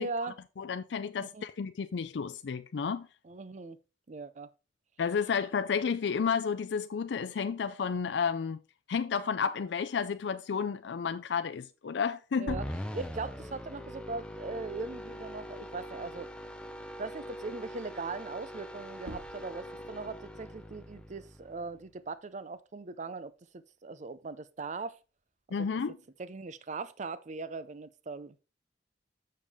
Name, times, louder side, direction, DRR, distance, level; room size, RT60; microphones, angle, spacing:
voice 1, 0.0-0.4 1.2-1.4 3.2-3.8 4.1-4.5 12.4-12.7 12.9-16.3 17.0-25.0 25.6-25.7 26.2-28.4, right 3 dB, 40° right, 0.5 m, -40 dB
voice 2, 0.6-3.1 5.0-8.6 8.9-12.6 25.5-25.9, left 6 dB, 70° left, 0.4 m, -31 dB
sound 1, 12.5-21.8, equal, 5° left, 0.6 m, -42 dB
sound 2, 22.2-24.2 24.6-26.4, equal, 75° right, 2.1 m, -53 dB
7.2 x 6.6 x 3.5 m
head